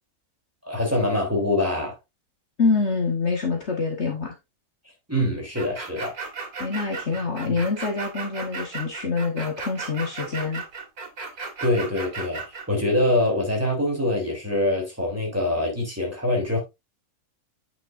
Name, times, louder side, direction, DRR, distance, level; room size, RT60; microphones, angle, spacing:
voice 1, 0.6-2.0 5.1-6.1 7.5-7.6 11.6-12.4 12.7-16.6, left 1 dB, 10° right, 3.2 m, -24 dB
voice 2, 2.6-4.3 6.6-10.6, left 4 dB, 50° left, 1.5 m, -26 dB
sound 1, 5.6-12.7, right 4 dB, 80° right, 2.3 m, -35 dB
8.9 x 6.0 x 2.5 m
omnidirectional pair, 1.6 m